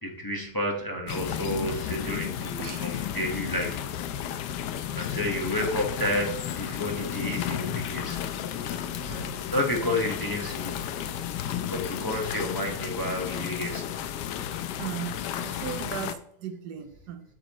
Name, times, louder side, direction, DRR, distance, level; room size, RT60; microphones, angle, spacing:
voice 1, 0.0-3.8 4.9-8.2 8.6-10.7 11.7-13.8, left 1 dB, 15° left, 0 dB, 1.1 m, -31 dB
sound 1, 1.1-16.1, left 10 dB, 85° left, 1.2 m, -33 dB
voice 2, 2.6-3.0 14.8-17.2, right 9 dB, 75° right, 8 dB, 1.3 m, -37 dB
8.0 x 7.1 x 3.1 m, 0.69 s
omnidirectional pair, 1.8 m